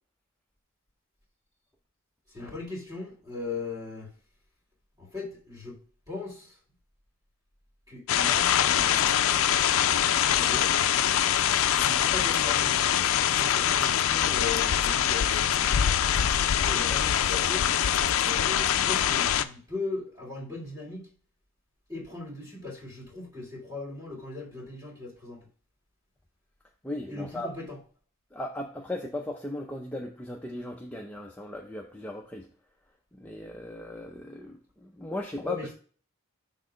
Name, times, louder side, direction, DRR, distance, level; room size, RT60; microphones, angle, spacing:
voice 1, 2.3-4.1 5.0-5.8 6.1-6.6 7.9-9.8 10.3-10.8 11.8-13.1 13.4-16.0 16.5-17.7 18.1-21.1 21.9-25.4 27.1-27.8 35.4-35.7, left 3 dB, 15° right, 2.0 m, -38 dB
sound 1, 8.1-19.4, left 10 dB, 70° left, 0.4 m, -24 dB
voice 2, 26.8-27.5 28.3-32.5 33.1-35.7, left 1 dB, 5° left, 0.4 m, -37 dB
6.4 x 3.8 x 5.0 m
head